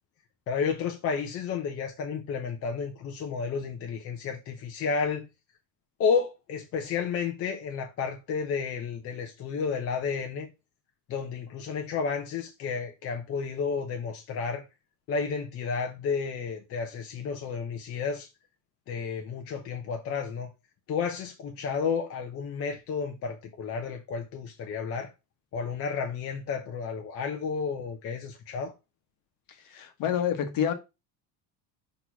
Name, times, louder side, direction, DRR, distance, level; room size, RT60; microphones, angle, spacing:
voice 1, 0.5-5.3 6.0-10.5 11.1-14.6 15.1-18.3 18.9-20.5 20.9-25.1 25.5-28.7, left 5 dB, 35° left, 0.8 m, -31 dB
voice 2, 29.7-30.7, left 9 dB, 50° left, 1.3 m, -27 dB
6.3 x 3.2 x 5.8 m
cardioid pair, 170°, 40 cm